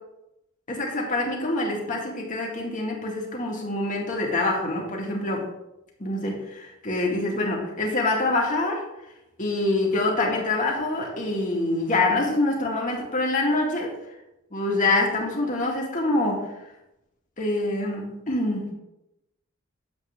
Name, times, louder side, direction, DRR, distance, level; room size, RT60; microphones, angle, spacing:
voice 1, 0.7-5.5 6.0-8.8 9.4-14.0 14.5-16.5 17.4-18.7, left 2 dB, 40° left, -1 dB, 2.1 m, -25 dB
9.3 x 7.4 x 3.6 m, 0.91 s
head